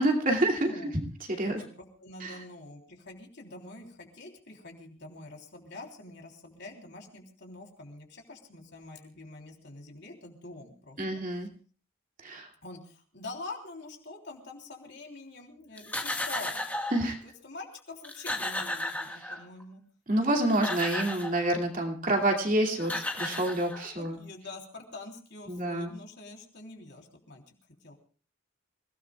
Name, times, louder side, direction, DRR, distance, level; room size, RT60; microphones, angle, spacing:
voice 1, 0.0-1.6 2.2-2.4 11.0-11.5 12.2-12.5 16.9-17.2 20.1-24.2 25.5-25.9, right 1 dB, 40° right, 1 dB, 2.6 m, -28 dB
voice 2, 1.4-11.2 12.6-16.6 17.1-19.8 23.6-27.4 27.8-27.9, left 2 dB, 55° left, 1 dB, 3.5 m, -45 dB
sound 1, 15.8-17.1 17.7-17.8 18.0-19.6 20.3-21.4 22.5-22.6 22.8-24.1, left 1 dB, 10° left, 1.6 m, -34 dB
28.5 x 17.5 x 2.4 m, 0.41 s
head